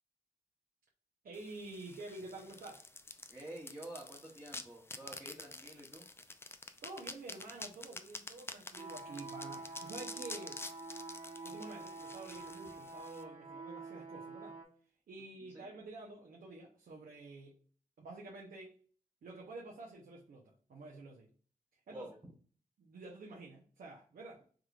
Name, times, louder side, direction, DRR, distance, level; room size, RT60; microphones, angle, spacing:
voice 1, 1.2-2.9 6.8-10.6 11.4-14.6 15.1-17.5 18.0-18.8 19.2-21.3 21.9-22.1 22.8-24.4, right 2 dB, 75° right, -2 dB, 0.7 m, -49 dB
sound 1, 1.3-13.2, left 2 dB, 15° left, 0.4 m, -49 dB
voice 2, 3.3-6.1 15.5-15.7 21.9-22.2, right 1 dB, 15° right, -5 dB, 0.9 m, -49 dB
sound 2, 8.8-14.6, right 3 dB, 45° right, 1.0 m, -47 dB
3.6 x 3.1 x 2.4 m, 0.43 s
cardioid pair, 60°, 15 cm